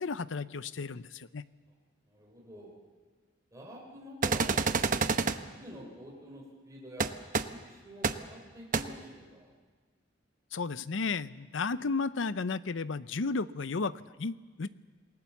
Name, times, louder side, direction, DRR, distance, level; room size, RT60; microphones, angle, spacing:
voice 1, 0.0-1.4 10.5-14.7, left 4 dB, 75° left, 15 dB, 0.7 m, -33 dB
voice 2, 2.1-2.8 3.5-7.1 7.5-9.5, equal, 15° right, -2 dB, 3.9 m, -48 dB
sound 1, 4.2-5.4 7.0-7.1 7.3-7.4 8.0-8.1 8.7-8.8, right 4 dB, 45° right, 0.9 m, -27 dB
27.5 x 19.5 x 7.2 m, 1.4 s
head